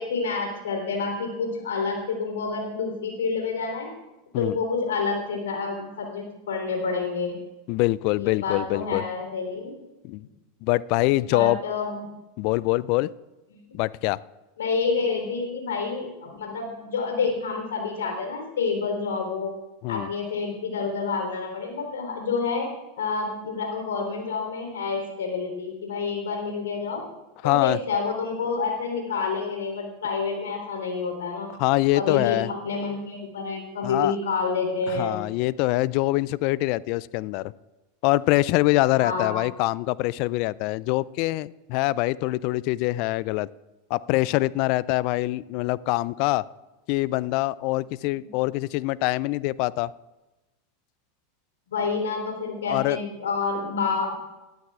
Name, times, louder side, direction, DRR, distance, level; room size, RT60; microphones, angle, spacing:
voice 1, 0.0-3.9 4.4-7.4 8.2-9.7 11.3-12.0 13.5-13.6 14.6-19.5 19.9-22.7 23.0-27.0 27.4-31.5 32.0-35.2 39.0-39.4 51.7-54.2, left 4 dB, 75° left, 2 dB, 3.5 m, -28 dB
voice 2, 7.7-9.0 10.0-10.2 10.6-11.6 12.4-13.1 13.7-14.2 19.8-20.1 27.4-27.8 31.6-32.5 33.8-34.1 34.9-37.5 38.0-43.5 43.9-46.4 46.9-49.9 52.6-53.0, left 19 dB, 55° left, 21 dB, 0.3 m, -24 dB
19.5 x 12.5 x 2.4 m, 1.1 s
hypercardioid pair, 90°, 0 cm